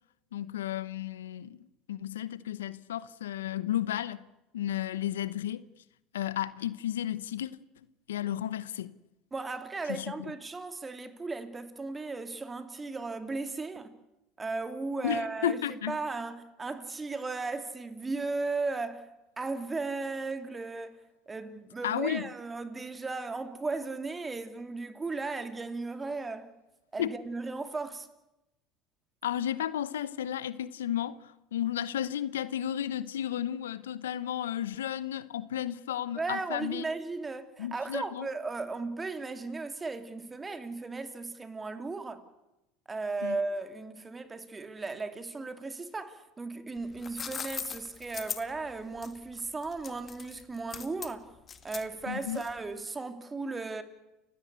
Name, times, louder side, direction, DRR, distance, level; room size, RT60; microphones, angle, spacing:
voice 1, 0.3-4.3 4.5-5.6 6.1-7.5 8.1-8.9 9.8-10.3 15.0-16.0 21.8-22.3 27.0-27.1 29.2-36.9 37.6-38.3 43.2-43.4 52.1-52.4, left 11 dB, 90° left, 0.9 m, -33 dB
voice 2, 9.3-13.9 14.4-19.1 19.4-21.0 21.3-26.5 26.9-28.1 36.2-42.2 42.9-51.3 51.6-53.8, right 3 dB, 20° right, 2.7 m, -36 dB
sound 1, 46.8-52.7, left 6 dB, 30° left, 2.0 m, -40 dB
30.0 x 16.5 x 8.2 m
hypercardioid pair, 85°, 0 cm